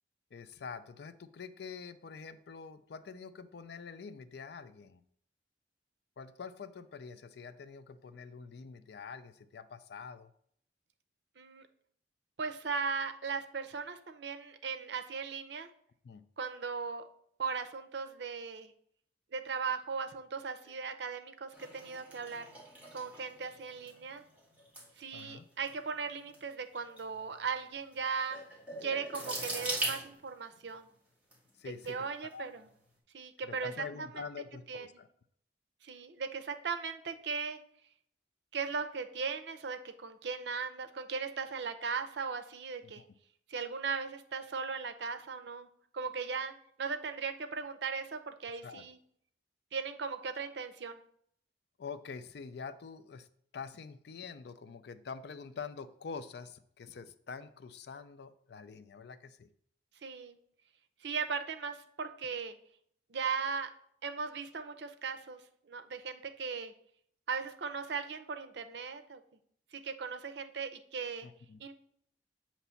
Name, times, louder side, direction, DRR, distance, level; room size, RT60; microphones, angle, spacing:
voice 1, 0.3-5.0 6.2-10.3 16.0-16.2 20.7-20.8 25.1-25.4 31.6-32.6 33.5-35.1 42.8-43.1 48.6-48.8 51.8-53.3 53.5-59.5 71.2-71.6, left 5 dB, 65° left, 12 dB, 0.4 m, -46 dB
voice 2, 11.4-11.7 12.4-15.7 16.4-17.0 17.4-18.7 19.3-22.4 22.9-24.2 25.0-28.4 28.8-30.9 31.9-32.7 33.1-33.8 34.7-34.9 35.8-37.6 38.5-43.0 43.5-45.7 45.9-49.0 49.7-51.0 60.0-60.4 61.0-62.6 63.1-63.7 64.0-65.4 65.7-66.7 67.3-69.2 69.7-71.3 71.6-71.7, right 5 dB, 65° right, 8 dB, 0.6 m, -38 dB
sound 1, 21.5-30.7 31.3-31.9 32.3-32.6, right 1 dB, 10° right, 1.6 m, -42 dB
8.0 x 3.0 x 5.6 m, 0.67 s
head